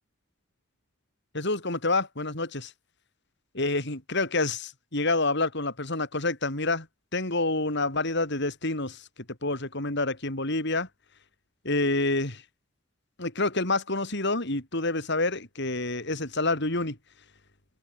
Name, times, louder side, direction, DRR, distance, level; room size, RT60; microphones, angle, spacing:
voice 1, 1.3-2.7 3.5-6.9 7.1-9.1 9.4-10.9 11.6-12.4 13.2-17.0, left 2 dB, 60° left, 5.5 m, -28 dB
head